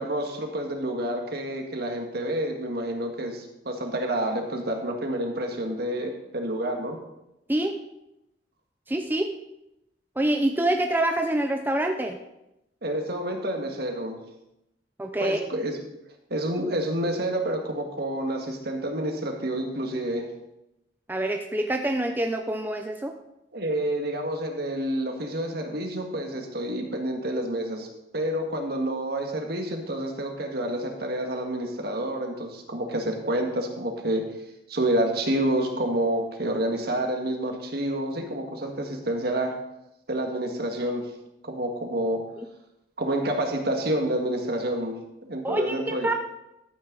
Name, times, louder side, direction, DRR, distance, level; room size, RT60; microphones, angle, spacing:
voice 1, 0.0-7.0 12.8-14.2 15.2-15.8 16.3-20.3 23.5-27.9 28.1-34.2 34.7-39.5 40.1-41.1 41.4-42.2 43.0-44.9 45.3-46.1, right 1 dB, 60° right, 3 dB, 1.7 m, -28 dB
voice 2, 8.9-9.3 10.2-12.2 15.0-15.4 21.1-23.1 45.4-46.1, right 1 dB, 10° right, 4 dB, 0.6 m, -26 dB
13.0 x 9.0 x 4.0 m, 0.87 s
head